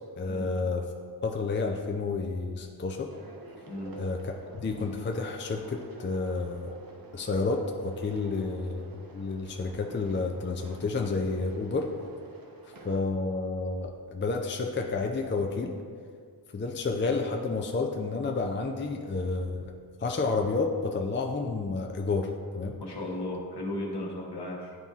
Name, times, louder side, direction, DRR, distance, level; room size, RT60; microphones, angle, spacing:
voice 1, 0.2-0.8 1.2-3.1 4.0-6.7 7.1-11.9 12.6-15.7 16.5-19.6 20.0-22.3 22.5-22.7, left 3 dB, 25° left, 2 dB, 0.4 m, -30 dB
sound 1, 3.1-13.0, right 2 dB, 50° right, 0.7 m, -49 dB
voice 2, 22.8-24.8, left 1 dB, 60° left, -2 dB, 1.2 m, -35 dB
10.5 x 3.5 x 2.8 m, 2.1 s
wide cardioid pair, 60°, 44 cm